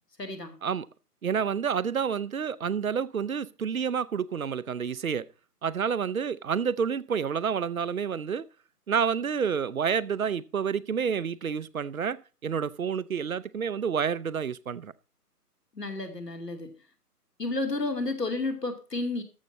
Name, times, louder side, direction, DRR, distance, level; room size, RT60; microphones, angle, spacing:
voice 1, 0.2-0.5 15.7-16.7 17.4-19.2, left 2 dB, 90° left, 2.5 m, -31 dB
voice 2, 1.2-5.3 5.6-8.4 8.9-14.9, right 7 dB, 60° right, 0.7 m, -29 dB
14.0 x 6.1 x 4.0 m
figure-of-eight pair, 145°, 47 cm